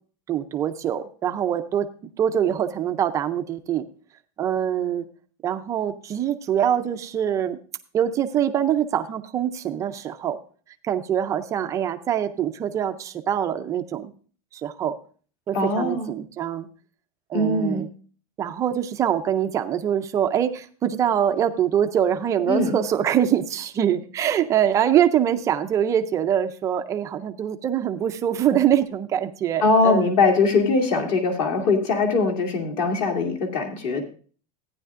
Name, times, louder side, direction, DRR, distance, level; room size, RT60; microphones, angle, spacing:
voice 1, 0.3-1.9 2.2-3.9 4.4-5.1 5.4-7.6 7.9-10.4 10.9-14.1 14.5-15.0 15.5-16.7 17.3-17.9 18.4-30.1, right 9 dB, 15° right, 8 dB, 0.4 m, -24 dB
voice 2, 15.5-16.1 17.3-17.8 22.5-22.8 29.6-34.0, left 3 dB, 45° left, 3 dB, 2.4 m, -21 dB
14.5 x 9.9 x 2.4 m, 0.41 s
supercardioid pair, 175°, 21 cm